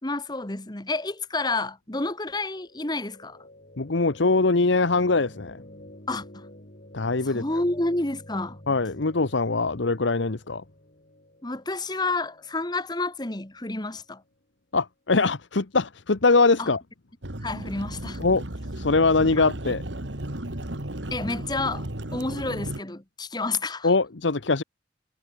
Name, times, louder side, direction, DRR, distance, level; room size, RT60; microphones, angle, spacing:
voice 1, 0.0-3.4 6.1-6.4 7.2-8.6 11.4-14.2 16.6-16.7 17.4-18.2 21.1-23.9, left 2 dB, 25° left, 1.5 m, -30 dB
sound 1, 2.1-14.2, left 1 dB, 50° left, 4.5 m, -49 dB
voice 2, 3.8-5.6 6.9-7.4 8.7-10.6 14.7-16.8 18.2-18.4 18.8-19.8 23.8-24.6, left 3 dB, 90° left, 1.1 m, -22 dB
sound 2, 17.2-22.8, right 1 dB, 80° right, 2.7 m, -34 dB
head